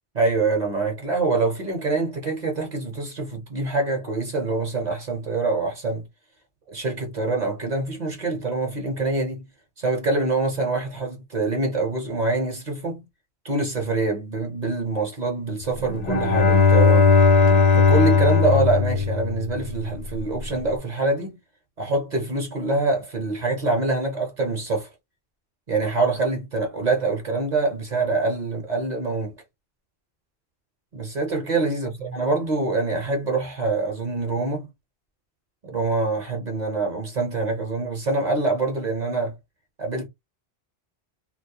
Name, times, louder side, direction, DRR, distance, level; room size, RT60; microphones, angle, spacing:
voice 1, 0.1-6.1 6.7-9.5 9.8-13.0 13.4-17.1 17.7-21.4 21.8-24.9 25.7-29.4 30.9-34.7 35.6-39.3 39.8-40.1, right 3 dB, 50° right, 0.7 m, -25 dB
Bowed string instrument, 15.9-19.9, left 5 dB, 50° left, 0.6 m, -18 dB
2.2 x 2.0 x 2.7 m
omnidirectional pair, 1.1 m